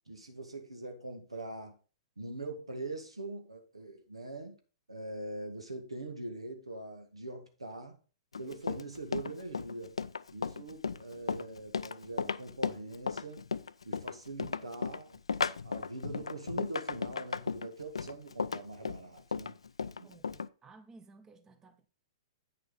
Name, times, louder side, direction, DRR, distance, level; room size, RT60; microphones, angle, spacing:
voice 1, 0.1-1.8 2.2-4.6 4.9-8.0 8.4-10.0 10.3-13.5 13.8-15.2 15.6-19.6 20.0-20.1, right 2 dB, 90° right, 1.9 m, -42 dB
Run, 8.3-20.5, left 5 dB, 80° left, 0.4 m, -35 dB
voice 2, 20.0-21.9, right 3 dB, 15° right, 0.9 m, -57 dB
8.7 x 6.6 x 4.1 m
figure-of-eight pair, 110°, 3 cm